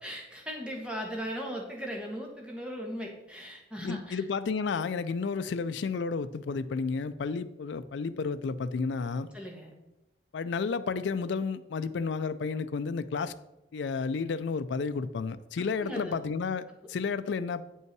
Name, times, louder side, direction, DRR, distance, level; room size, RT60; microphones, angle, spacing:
voice 1, 0.0-4.2 9.3-9.7 15.6-16.2, equal, 5° right, 0 dB, 1.4 m, -38 dB
voice 2, 3.8-9.3 10.3-13.3 13.7-17.6, left 5 dB, 75° left, 12 dB, 0.4 m, -32 dB
8.3 x 5.5 x 4.6 m, 0.93 s
head